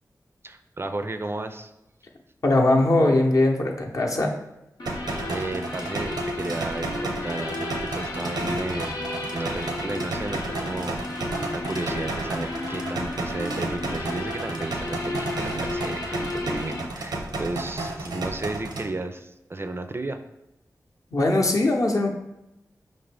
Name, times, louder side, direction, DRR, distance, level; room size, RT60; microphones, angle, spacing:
voice 1, 0.4-1.7 5.3-20.2, right 2 dB, 35° right, 7 dB, 0.3 m, -33 dB
voice 2, 2.4-4.3 21.1-22.1, left 2 dB, 55° left, 0 dB, 0.7 m, -20 dB
sound 1, 4.8-16.8, left 2 dB, 90° left, 0.8 m, -33 dB
sound 2, 4.9-18.9, right 2 dB, 85° right, 0.6 m, -32 dB
5.0 x 2.6 x 3.3 m, 0.92 s
cardioid pair, 40°, 7 cm